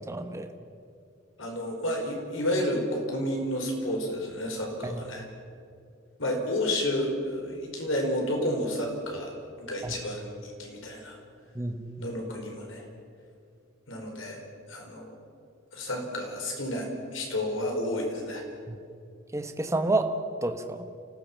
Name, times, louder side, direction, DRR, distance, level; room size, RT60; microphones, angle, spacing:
voice 1, 0.1-0.5 4.8-5.0 9.8-10.0 11.5-12.1 18.7-18.8 19.3-20.1 20.4-20.8, right 2 dB, 15° right, 5 dB, 1.2 m, -30 dB
voice 2, 1.4-5.2 6.2-11.2 12.0-12.8 13.9-14.4 14.7-15.1 15.7-18.4, left 1 dB, 65° left, 1 dB, 4.9 m, -31 dB
29.0 x 15.5 x 7.3 m, 2.4 s
head